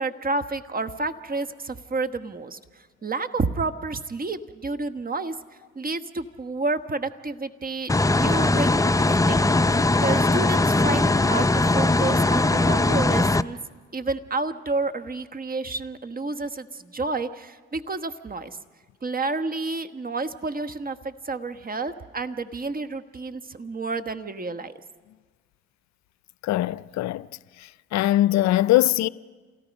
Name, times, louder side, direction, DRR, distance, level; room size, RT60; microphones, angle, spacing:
voice 1, 0.0-5.3 5.7-9.5 10.0-13.6 13.9-18.6 19.0-24.7, right 3 dB, 30° right, 1.3 m, -30 dB
sound 1, 7.9-13.4, left 2 dB, 10° left, 0.6 m, -20 dB
voice 2, 26.4-27.3 27.9-29.1, left 15 dB, 65° left, 0.5 m, -21 dB
28.0 x 18.0 x 5.3 m
supercardioid pair, 60°, 29 cm